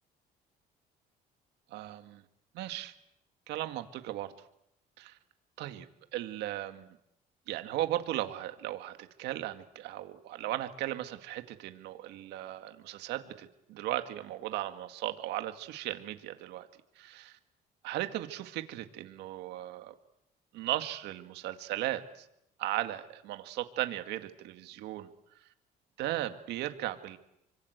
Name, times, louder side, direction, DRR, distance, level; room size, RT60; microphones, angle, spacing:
voice 1, 1.7-2.2 2.5-2.9 3.5-4.3 5.0-5.2 5.6-5.9 6.1-7.0 7.5-16.7 17.0-17.4 17.8-19.9 20.5-22.3 22.6-25.1 26.0-27.2, right 14 dB, 85° right, 8 dB, 2.1 m, -36 dB
27.5 x 25.0 x 8.1 m, 0.80 s
cardioid pair, 110°, 17 cm